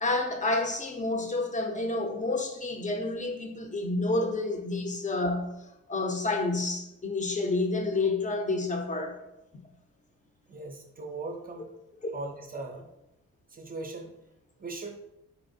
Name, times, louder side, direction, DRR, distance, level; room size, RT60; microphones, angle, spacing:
voice 1, 0.0-5.5 5.9-9.2, left 2 dB, 25° left, 0.6 m, -29 dB
voice 2, 10.5-11.7 12.1-12.9 13.5-14.1 14.6-15.0, right 3 dB, 30° right, 0.5 m, -39 dB
4.4 x 2.8 x 2.6 m
cardioid pair, 90°, 30 cm